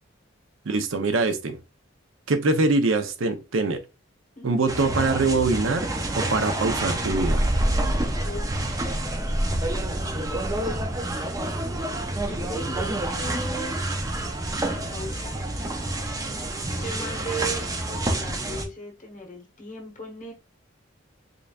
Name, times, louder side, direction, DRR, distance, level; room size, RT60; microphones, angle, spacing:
voice 1, 0.7-1.6 2.3-3.8 4.4-5.9 6.1-7.5, right 3 dB, 85° right, 0.6 m, -23 dB
sound 1, 4.7-18.6, right 1 dB, 15° right, 0.5 m, -27 dB
voice 2, 8.2-9.4 12.3-13.8 14.7-15.7 16.4-20.3, right 1 dB, 40° left, 1.0 m, -38 dB
3.9 x 3.3 x 2.3 m
head